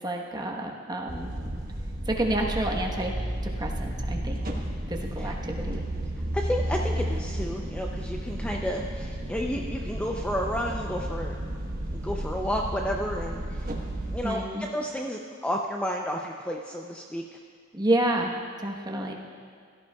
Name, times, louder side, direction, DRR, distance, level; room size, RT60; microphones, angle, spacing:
voice 1, 0.0-1.3 2.1-3.1 3.6-4.4 4.9-5.8 14.2-14.7 17.7-19.1, right 1 dB, 20° right, 0 dB, 1.1 m, -29 dB
sound 1, 1.1-14.2, right 1 dB, 45° right, 1.2 m, -32 dB
voice 2, 6.3-11.4 11.9-13.7 14.1-17.2, equal, 5° left, 0 dB, 0.5 m, -31 dB
16.5 x 13.0 x 2.3 m, 2.1 s
head